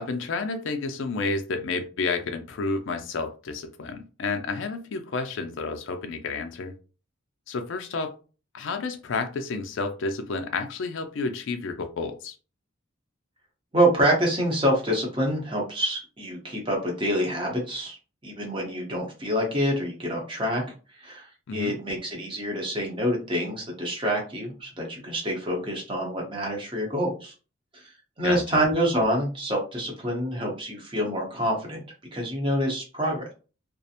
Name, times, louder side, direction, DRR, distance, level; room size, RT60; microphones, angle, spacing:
voice 1, 0.0-6.7 7.5-8.2 8.5-12.4 21.5-21.8 28.2-28.6, left 4 dB, 60° left, 6 dB, 0.4 m, -30 dB
voice 2, 13.7-18.0 18.2-20.6 21.0-27.3 27.7-27.8 28.2-31.8 32.1-33.3, equal, 25° right, -1 dB, 0.8 m, -26 dB
2.4 x 2.0 x 2.7 m, 0.35 s
head